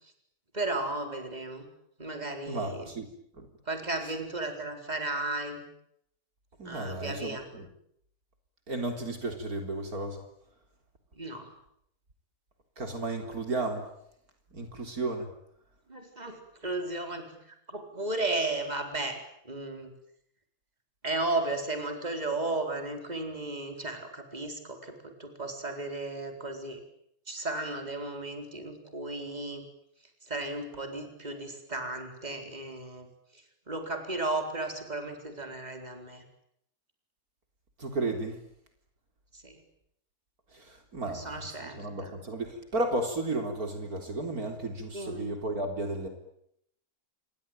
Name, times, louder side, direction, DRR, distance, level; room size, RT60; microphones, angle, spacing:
voice 1, 0.5-1.7 2.0-2.9 3.7-5.6 6.6-7.4 11.2-11.5 15.9-17.3 17.7-19.9 21.0-26.8 27.3-29.6 30.3-33.1 33.7-36.2 39.3-39.6 41.0-42.1 44.9-45.3, right 2 dB, 25° right, 5 dB, 4.4 m, -34 dB
voice 2, 2.5-3.1 3.3-3.5 6.6-7.7 8.7-10.2 12.8-13.9 14.5-15.3 37.8-38.4 40.5-46.1, right 2 dB, 70° right, 5 dB, 4.2 m, -33 dB
28.0 x 23.0 x 9.1 m, 0.74 s
omnidirectional pair, 1.6 m